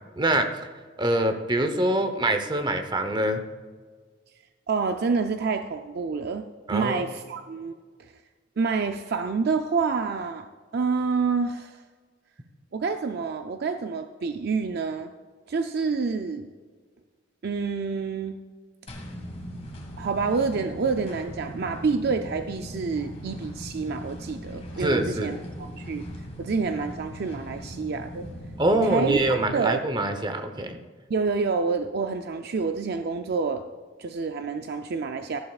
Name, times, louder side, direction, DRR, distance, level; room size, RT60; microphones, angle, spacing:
voice 1, 0.2-0.5 1.0-3.4 6.7-7.1 24.8-25.3 28.6-30.8, right 1 dB, 25° right, 7 dB, 0.9 m, -24 dB
voice 2, 4.7-7.7 8.0-8.1 8.6-10.5 10.7-11.8 12.7-15.1 15.5-16.5 17.4-18.4 20.0-26.0 26.4-28.3 28.8-29.2 29.5-29.8 31.1-33.6 34.0-35.4, right 4 dB, 55° right, 7 dB, 0.4 m, -28 dB
sound 1, 18.9-29.4, equal, 35° left, 1.7 m, -39 dB
14.0 x 11.0 x 2.4 m, 1.5 s
head